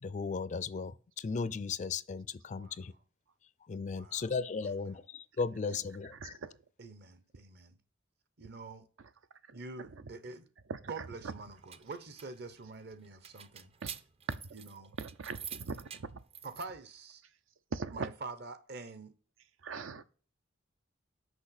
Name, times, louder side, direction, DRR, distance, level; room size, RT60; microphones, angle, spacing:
voice 1, 0.0-2.9 3.7-6.4, left 5 dB, 35° left, 0.4 m, -36 dB
voice 2, 2.6-3.0 3.9-4.3 4.6-5.0 5.7-5.9 6.8-7.8 8.4-8.9 9.5-10.5 10.8-13.7 14.5-14.9 16.4-17.2 17.9-19.1, right 3 dB, 55° right, 0.9 m, -46 dB
voice 3, 6.2-6.5 9.8-10.0 10.8-11.3 13.8-13.9 14.3-14.4 15.0-15.9 17.7-18.1 19.6-20.0, right 4 dB, 80° right, 0.6 m, -40 dB
sound 1, 11.4-16.6, right 8 dB, 30° right, 0.5 m, -48 dB
6.4 x 5.3 x 5.7 m
head